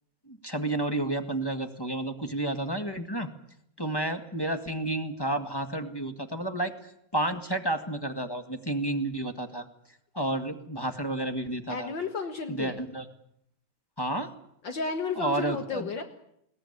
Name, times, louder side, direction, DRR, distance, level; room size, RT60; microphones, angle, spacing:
voice 1, 0.3-3.3 3.8-6.7 7.1-9.7 10.1-11.9 12.5-13.0 14.0-14.3 15.2-16.0, right 1 dB, 10° left, 6 dB, 1.7 m, -31 dB
voice 2, 11.7-12.8 14.6-16.0, left 4 dB, 65° left, 6 dB, 2.3 m, -32 dB
21.5 x 18.0 x 9.9 m, 0.74 s
omnidirectional pair, 2.3 m